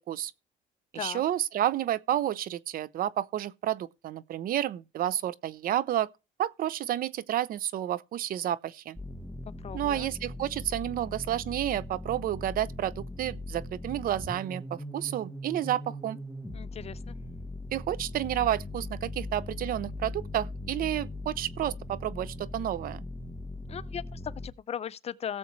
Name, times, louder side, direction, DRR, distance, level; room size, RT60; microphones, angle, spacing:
voice 1, 0.9-6.1 6.4-9.0 9.7-16.2 17.7-23.0, right 12 dB, 60° right, 0.7 m, -30 dB
sound 1, 9.0-24.5, left 1 dB, ahead, 1.2 m, -40 dB
voice 2, 9.6-10.1 16.5-17.2 23.7-25.4, left 8 dB, 40° left, 0.6 m, -38 dB
17.0 x 7.3 x 3.2 m
cardioid pair, 110°, 17 cm